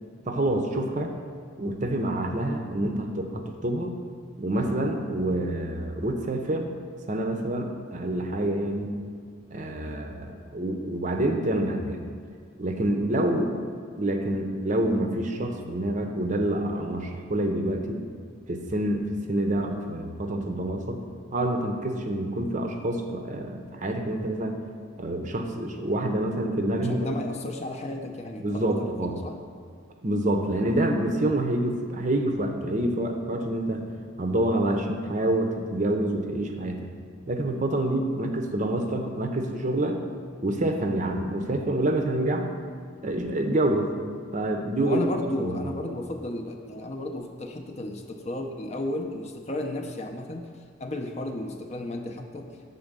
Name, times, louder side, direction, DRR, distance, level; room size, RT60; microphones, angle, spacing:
voice 1, 0.3-1.1 1.6-3.9 4.4-6.7 7.1-8.9 9.5-12.1 12.6-13.6 14.0-18.0 18.5-21.0 21.3-24.6 25.0-27.2 28.4-29.2 30.0-33.8 34.2-36.9 37.3-40.0 40.4-42.5 43.0-43.9 44.3-45.0 45.4-45.6, right 1 dB, 40° right, 4 dB, 0.6 m, -27 dB
voice 2, 26.9-29.4 30.3-30.4 44.8-50.5 50.8-52.5, left 1 dB, 35° left, 4 dB, 0.5 m, -33 dB
7.1 x 4.0 x 6.6 m, 2.2 s
head